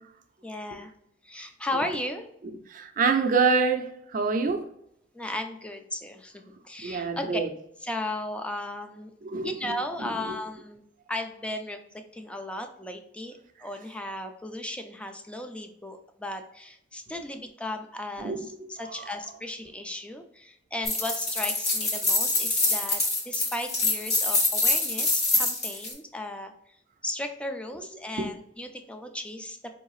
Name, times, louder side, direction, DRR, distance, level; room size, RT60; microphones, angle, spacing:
voice 1, 0.4-0.9 1.2-2.3 5.1-7.4 7.8-9.1 9.4-10.8 11.1-26.5 27.0-29.7, left 1 dB, 5° left, 6 dB, 0.4 m, -36 dB
voice 2, 2.7-4.7 6.8-7.5 9.2-9.8 10.3-10.4 18.2-18.4 28.2-28.3, right 4 dB, 50° right, 7 dB, 0.5 m, -26 dB
sound 1, 20.9-25.9, left 2 dB, 40° left, 1.1 m, -25 dB
4.7 x 2.7 x 3.0 m, 0.74 s
head